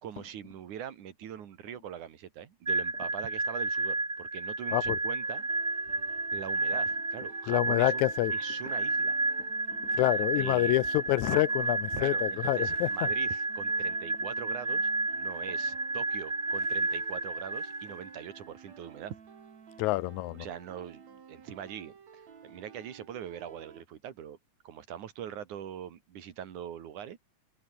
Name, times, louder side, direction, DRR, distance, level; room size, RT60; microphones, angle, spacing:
voice 1, 0.0-5.4 6.3-8.1 8.3-9.2 10.1-10.8 11.9-19.2 20.3-24.4 24.6-27.2, right 9 dB, 85° right, 3.4 m, -42 dB
sound 1, 2.7-18.3, right 2 dB, 15° right, 1.1 m, -31 dB
sound 2, 5.2-23.8, right 6 dB, 65° right, 4.2 m, -53 dB
voice 2, 7.5-8.3 10.0-12.9 19.8-20.5, left 20 dB, 80° left, 1.9 m, -27 dB
omnidirectional pair, 3.4 m